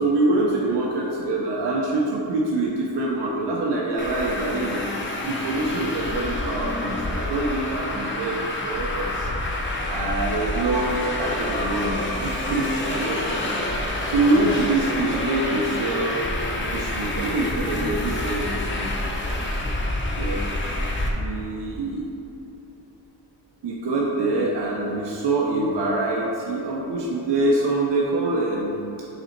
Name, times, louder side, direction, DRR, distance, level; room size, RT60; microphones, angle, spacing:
voice 1, 0.0-4.9 5.2-18.9 19.2-19.4 19.9-20.6 21.2-22.1 23.6-29.1, right 2 dB, 75° right, -3 dB, 0.8 m, -25 dB
Traffic noise roadway noise, 4.0-21.1, left 1 dB, 30° left, 0.7 m, -28 dB
6.7 x 4.0 x 4.5 m, 2.9 s
wide cardioid pair, 145°, 42 cm